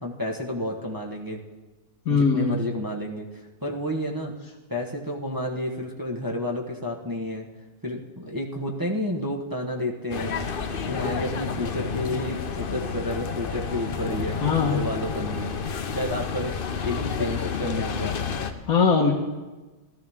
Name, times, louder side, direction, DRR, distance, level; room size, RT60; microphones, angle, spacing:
voice 1, 0.0-1.4 2.1-4.3 4.7-7.5 7.8-10.4 10.9-15.6 15.9-18.2, left 1 dB, 15° right, -2 dB, 0.9 m, -31 dB
voice 2, 2.1-2.6 14.4-14.8 18.7-19.1, left 5 dB, 55° left, -3 dB, 1.6 m, -20 dB
sound 1, 10.1-18.5, left 6 dB, 75° left, 0.5 m, -30 dB
17.5 x 13.0 x 3.6 m, 1.2 s
omnidirectional pair, 2.0 m